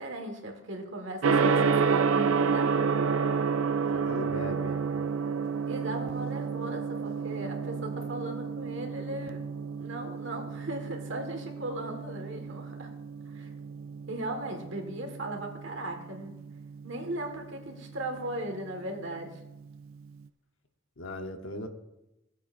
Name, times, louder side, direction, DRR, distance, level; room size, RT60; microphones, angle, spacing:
voice 1, 0.0-2.8 5.7-9.4 9.8-12.9 13.3-13.5 14.1-16.3 16.8-19.4, right 1 dB, 65° right, 4 dB, 1.7 m, -37 dB
Gong, 1.2-20.2, right 5 dB, 85° right, 0.4 m, -31 dB
voice 2, 3.9-4.8 21.0-21.7, left 1 dB, 75° left, 6 dB, 1.0 m, -37 dB
16.0 x 8.2 x 2.6 m, 0.94 s
head